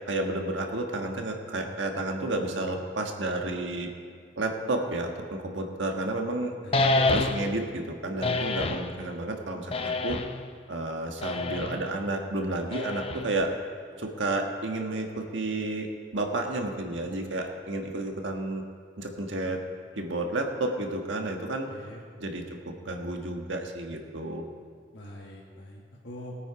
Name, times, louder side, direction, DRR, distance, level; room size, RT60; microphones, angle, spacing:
voice 1, 0.1-3.9 4.4-6.5 7.0-10.2 10.7-13.5 14.0-18.6 19.0-19.6 19.9-21.7 22.2-24.4, right 2 dB, 90° right, 3 dB, 1.5 m, -31 dB
voice 2, 6.6-7.0 21.4-22.0 24.9-26.4, left 1 dB, 75° left, -3 dB, 1.6 m, -44 dB
sound 1, 6.7-7.6 8.2-8.9 9.7-10.5 11.2-11.8 12.7-13.4, left 2 dB, 30° left, 0.5 m, -27 dB
19.0 x 9.0 x 4.8 m, 2.1 s
head